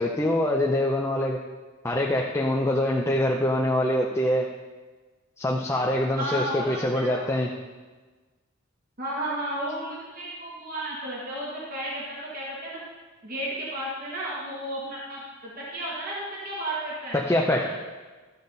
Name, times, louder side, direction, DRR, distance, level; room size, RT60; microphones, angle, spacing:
voice 1, 0.0-1.4 1.8-4.5 5.4-7.5 17.1-17.7, left 1 dB, 15° left, -1 dB, 0.6 m, -24 dB
voice 2, 6.2-7.3 9.0-12.8 13.2-17.1 17.6-17.7, right 1 dB, 45° right, -5 dB, 1.5 m, -33 dB
12.5 x 7.1 x 4.0 m, 1.3 s
head